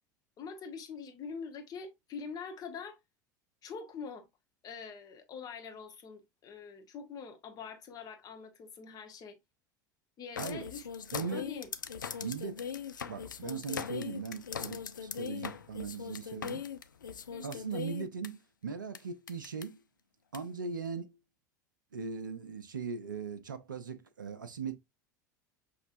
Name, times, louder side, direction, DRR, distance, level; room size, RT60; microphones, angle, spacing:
voice 1, 0.4-3.0 3.6-4.3 4.6-9.4 10.2-10.9 11.3-11.7 17.3-17.6, left 5 dB, 40° left, 1.3 m, -44 dB
sound 1, 10.4-18.3 18.9-19.0 19.3-19.6 20.3-20.4, left 7 dB, 85° left, 0.4 m, -40 dB
voice 2, 11.1-11.5 12.2-12.6 13.1-16.6 17.4-19.8 20.3-21.1 21.9-24.8, right 5 dB, 85° right, 0.5 m, -39 dB
5.9 x 3.1 x 2.5 m
figure-of-eight pair, 75°, 10 cm